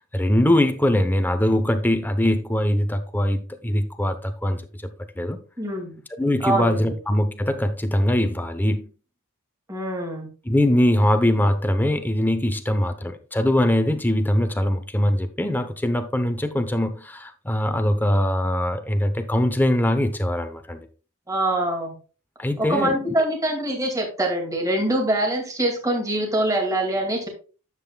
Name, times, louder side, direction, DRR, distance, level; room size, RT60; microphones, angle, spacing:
voice 1, 0.1-4.6 5.2-5.4 6.2-8.8 10.5-20.9 22.4-23.0, left 1 dB, 10° left, 0.7 m, -22 dB
voice 2, 5.6-5.9 6.4-6.9 9.7-10.3 21.3-22.0 22.6-27.3, right 1 dB, 15° right, 2.2 m, -24 dB
10.5 x 7.6 x 2.3 m
head